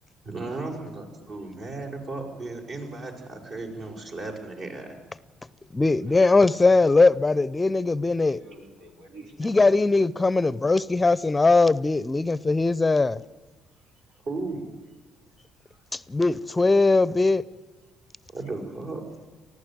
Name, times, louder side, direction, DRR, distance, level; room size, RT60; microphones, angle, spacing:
voice 1, 0.2-5.0 14.3-14.6 18.3-19.0, right 3 dB, 60° right, 6.2 m, -35 dB
voice 2, 5.7-8.4 9.4-13.2 15.9-17.4, left 3 dB, 20° left, 0.6 m, -20 dB
voice 3, 8.2-10.0 14.1-14.2 15.7-15.8 18.4-18.6, right 1 dB, 85° right, 3.9 m, -49 dB
19.5 x 15.0 x 9.4 m
supercardioid pair, 70°, 0 cm